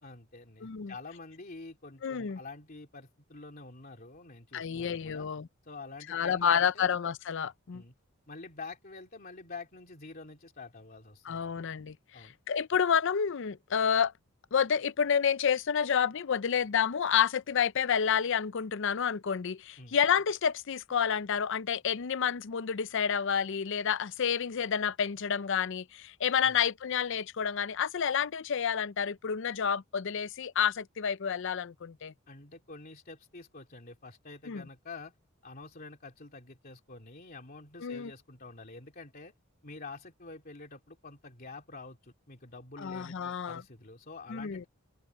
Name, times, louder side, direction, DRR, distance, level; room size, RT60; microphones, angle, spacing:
voice 1, 0.0-5.3 5.6-6.9 7.7-7.9 8.3-11.6 12.1-12.4 19.8-20.0 26.4-26.6 32.3-35.1 35.4-39.3 39.6-44.7, left 3 dB, 45° left, 2.8 m, -47 dB
voice 2, 0.6-0.9 2.0-2.4 4.5-5.5 6.1-7.8 11.3-14.1 14.5-32.1 34.5-34.6 37.8-38.1 42.8-43.6 44.3-44.7, left 7 dB, 65° left, 0.5 m, -29 dB
head